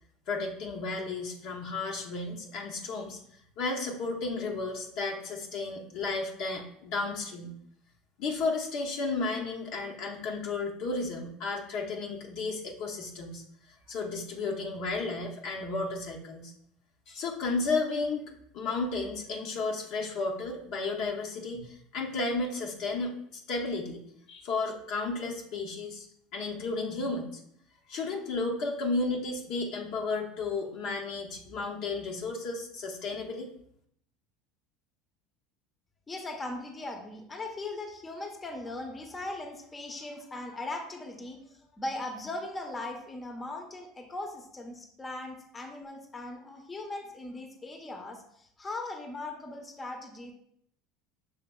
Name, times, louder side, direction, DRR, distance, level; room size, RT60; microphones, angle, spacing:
voice 1, 0.3-3.2 3.6-7.5 8.2-13.4 13.9-16.5 17.1-18.3 18.5-24.0 24.3-26.1 26.3-27.4 27.9-33.5, left 3 dB, 65° left, 0 dB, 0.8 m, -33 dB
voice 2, 36.1-50.3, left 2 dB, 20° left, 3 dB, 0.7 m, -39 dB
5.7 x 3.3 x 2.3 m, 0.71 s
hypercardioid pair, 85°, 0 cm